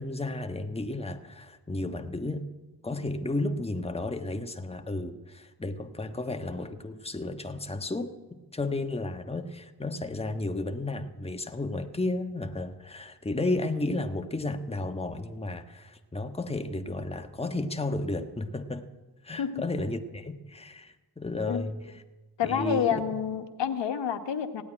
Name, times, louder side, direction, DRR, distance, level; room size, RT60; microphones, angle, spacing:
voice 1, 0.0-2.5 2.8-8.1 8.5-18.9 19.2-22.0 22.4-23.0, left 2 dB, 15° left, 6 dB, 1.3 m, -33 dB
voice 2, 22.4-24.6, left 8 dB, 70° left, 7 dB, 1.2 m, -28 dB
16.5 x 8.6 x 9.9 m, 1.2 s
cardioid pair, 50°, 44 cm